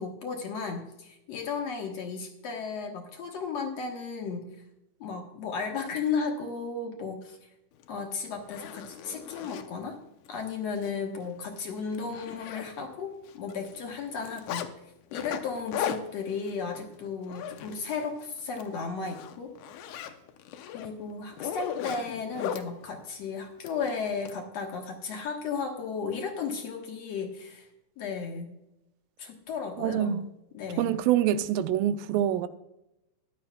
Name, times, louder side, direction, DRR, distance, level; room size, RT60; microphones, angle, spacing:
voice 1, 0.0-4.6 5.0-7.4 7.9-10.0 10.3-14.7 15.1-19.5 20.7-27.7 28.0-28.6 29.2-30.2 30.5-30.9, left 5 dB, 60° left, 2.2 m, -34 dB
Zipper (clothing), 7.8-7.9 8.4-9.7 10.3-10.4 10.8-10.9 11.2-11.4 11.7-13.0 13.3-14.7 15.1-18.1 18.4-18.7 19.0-22.7 23.6-24.4, left 9 dB, 75° left, 2.1 m, -37 dB
voice 2, 29.8-30.3 30.8-32.5, right 11 dB, 85° right, 2.3 m, -26 dB
15.0 x 11.0 x 2.3 m
omnidirectional pair, 3.9 m